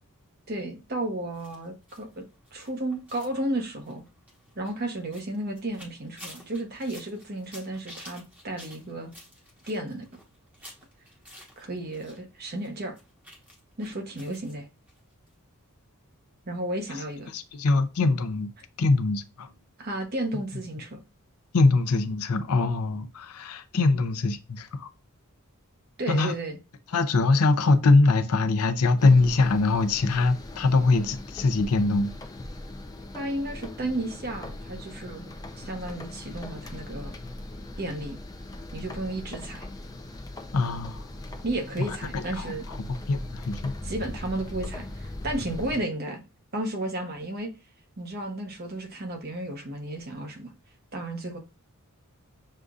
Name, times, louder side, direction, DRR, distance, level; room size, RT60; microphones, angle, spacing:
voice 1, 0.5-2.3 2.5-4.0 4.6-9.1 9.7-10.1 11.6-12.9 13.8-14.6 16.5-17.3 19.8-21.0 26.0-26.6 33.1-35.3 35.6-37.1 37.8-38.2 38.7-39.7 41.4-42.7 43.8-46.2 46.5-47.5 48.0-50.5 50.9-51.4, right 1 dB, 45° right, 0.9 m, -33 dB
sound 1, 1.3-12.2 12.4-14.5 14.9-15.0 15.3-15.4, equal, 5° right, 1.0 m, -50 dB
voice 2, 17.3-18.5 18.8-19.5 21.5-24.9 26.1-26.3 26.9-32.1 40.5-41.0 41.9-42.5 43.1-43.7, left 3 dB, 80° left, 0.5 m, -23 dB
sound 2, 29.0-45.8, left 1 dB, 15° left, 0.4 m, -40 dB
6.5 x 2.6 x 2.4 m
head